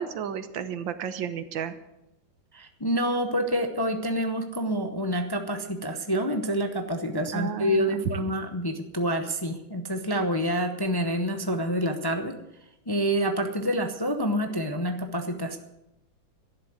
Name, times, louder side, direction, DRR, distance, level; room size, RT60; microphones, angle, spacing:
voice 1, 0.0-1.8 7.3-8.3, right 7 dB, 80° right, 12 dB, 1.8 m, -32 dB
voice 2, 2.5-12.3 12.9-15.6, equal, 20° left, 6 dB, 0.6 m, -27 dB
12.5 x 11.0 x 8.0 m, 0.91 s
omnidirectional pair, 2.0 m